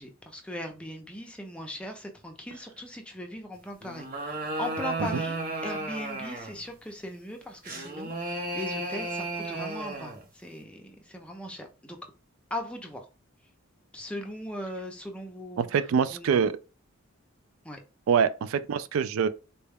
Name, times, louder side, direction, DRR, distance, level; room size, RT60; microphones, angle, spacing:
voice 1, 0.0-12.0 12.5-13.1 13.9-15.7 16.1-16.4 17.6-17.8, left 1 dB, 5° left, 0.5 m, -39 dB
sound 1, 3.8-6.6 7.6-10.2, right 2 dB, 40° right, 0.8 m, -34 dB
voice 2, 15.6-16.6 18.1-19.3, right 6 dB, 80° right, 0.3 m, -25 dB
4.0 x 2.2 x 3.4 m
head